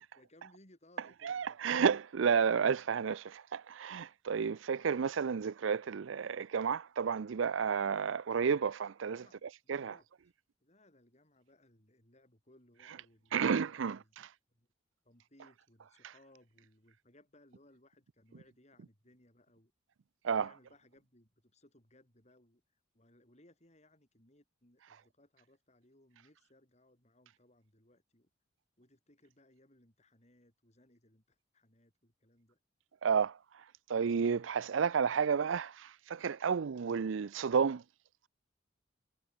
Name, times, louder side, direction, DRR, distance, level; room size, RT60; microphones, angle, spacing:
voice 1, 0.0-1.9 9.1-10.1 10.6-14.1 14.5-14.7 15.0-19.7 20.3-28.3 28.8-32.6, left 1 dB, 35° left, 7.2 m, -65 dB
voice 2, 1.2-10.0 13.3-14.3 20.2-20.5 33.0-33.4 33.9-37.8, right 6 dB, 85° right, 0.5 m, -31 dB
head